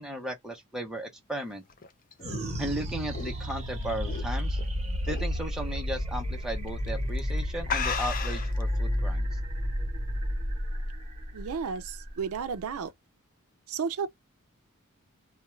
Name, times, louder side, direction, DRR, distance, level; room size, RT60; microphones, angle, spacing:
voice 1, 0.0-1.6 2.6-4.6 5.0-9.3, right 1 dB, 5° right, 0.7 m, -35 dB
sound 1, 1.5-4.6 5.1-5.4 5.7-5.8 6.7-6.9 7.2-7.3 7.7-8.6, left 6 dB, 40° left, 0.4 m, -34 dB
sound 2, 2.2-12.9, equal, 30° right, 1.0 m, -31 dB
voice 2, 11.3-12.9 13.7-14.1, right 6 dB, 70° right, 0.4 m, -32 dB
2.4 x 2.2 x 3.0 m
head